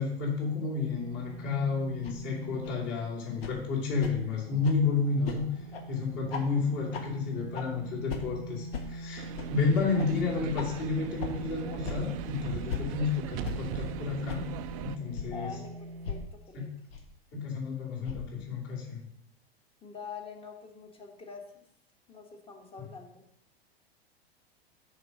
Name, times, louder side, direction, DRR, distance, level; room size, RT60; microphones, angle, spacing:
voice 1, 0.0-5.5 5.9-14.5 14.8-15.6 16.5-16.8 17.3-19.0, left 4 dB, 40° left, -3 dB, 2.8 m, -31 dB
sound 1, 0.8-16.3, right 1 dB, 60° right, 0.7 m, -44 dB
sound 2, 2.0-2.2 2.6-2.8 3.4-3.5 4.0-4.1 4.6-4.8 5.2-5.4 5.7-5.8 6.3-6.4 6.9-7.0 7.5-7.7 8.1-8.2 8.7-8.8 9.4-9.5 10.0-10.1 10.6-10.7 11.2-11.3 11.8-12.0 12.7-12.8 13.4-13.5 14.3-14.4 15.1-15.3 16.0-16.2 16.9-17.0 18.0-18.2, left 6 dB, 65° left, 1.3 m, -37 dB
sound 3, 9.2-15.0, right 10 dB, 35° right, 0.4 m, -39 dB
voice 2, 15.3-16.7 19.8-21.6 22.1-23.2, left 5 dB, 15° left, 3 dB, 1.3 m, -45 dB
6.6 x 5.5 x 5.2 m, 0.72 s
figure-of-eight pair, 95°, 32 cm